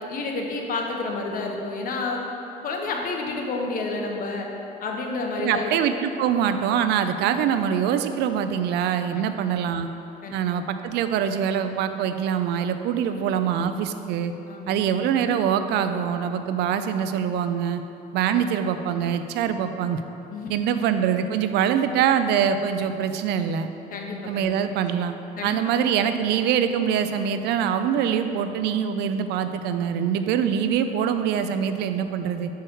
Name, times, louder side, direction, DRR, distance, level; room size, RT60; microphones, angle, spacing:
voice 1, 0.1-2.2 2.6-4.5 4.8-5.7 10.2-10.4 14.5-14.7 20.3-20.5 23.9-24.5 25.4-25.5, left 3 dB, 55° left, 1 dB, 1.0 m, -29 dB
voice 2, 5.4-9.9 10.3-14.3 14.7-17.8 18.1-20.0 20.5-23.7 24.3-25.1 25.4-32.5, right 8 dB, 80° right, 9 dB, 0.4 m, -24 dB
6.2 x 4.6 x 4.6 m, 2.9 s
cardioid pair, 110°, 17 cm